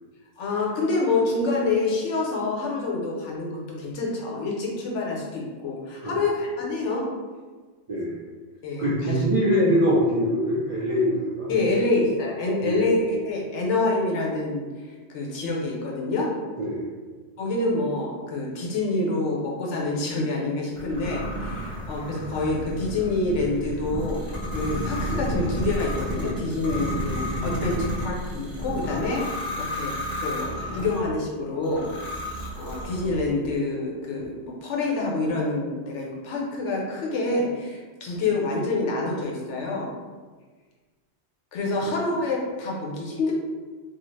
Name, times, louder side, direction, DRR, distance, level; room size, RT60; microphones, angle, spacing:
voice 1, 0.4-7.1 8.6-9.2 11.5-14.7 15.1-16.4 17.4-24.2 24.5-29.9 30.2-31.9 32.5-39.9 41.5-43.3, left 2 dB, 85° left, -2 dB, 1.0 m, -27 dB
voice 2, 7.9-8.2 8.8-11.7 12.6-12.8 16.6-16.9, equal, 65° right, -7 dB, 0.3 m, -23 dB
sound 1, 20.8-31.1 31.6-33.3, equal, 20° left, 1.0 m, -31 dB
2.7 x 2.4 x 3.1 m, 1.4 s
omnidirectional pair, 1.2 m